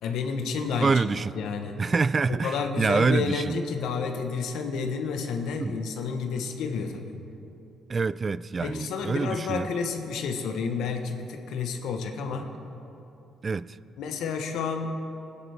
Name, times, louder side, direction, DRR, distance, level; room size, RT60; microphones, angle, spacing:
voice 1, 0.0-1.0 1.3-1.8 2.3-7.1 8.6-12.5 14.0-14.9, left 5 dB, 85° left, 5 dB, 1.1 m, -30 dB
voice 2, 0.8-1.3 1.8-3.6 5.6-5.8 7.9-9.7 13.4-13.7, right 4 dB, 35° right, 18 dB, 0.3 m, -26 dB
20.0 x 9.9 x 3.5 m, 2.8 s
cardioid pair, 90°, 0 cm